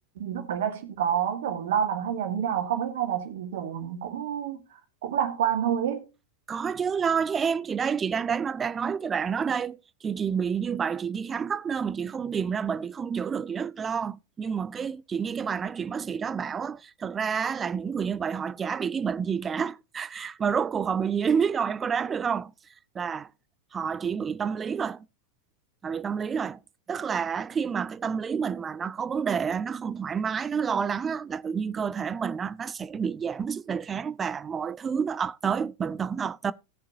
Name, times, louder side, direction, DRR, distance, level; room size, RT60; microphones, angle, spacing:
voice 1, 0.2-4.6 5.0-6.0, right 9 dB, 55° right, 2.1 m, -28 dB
voice 2, 6.5-22.5 22.9-23.3 23.7-25.0 25.8-26.6 26.9-36.5, right 6 dB, 20° right, 0.5 m, -29 dB
18.0 x 6.7 x 2.6 m
figure-of-eight pair, 90°, 0 cm